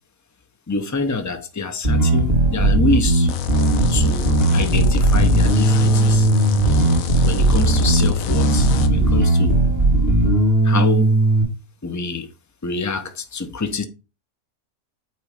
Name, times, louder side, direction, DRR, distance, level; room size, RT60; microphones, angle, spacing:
voice 1, 0.7-3.3 3.9-6.3 7.2-9.6 10.6-11.2 11.8-12.3 12.6-13.9, left 3 dB, 20° left, 0.5 m, -26 dB
Bass guitar, 1.8-11.4, right 2 dB, 40° right, 1.9 m, -17 dB
sound 1, 3.3-8.9, left 9 dB, 70° left, 1.1 m, -26 dB
8.8 x 3.2 x 4.9 m
omnidirectional pair, 1.6 m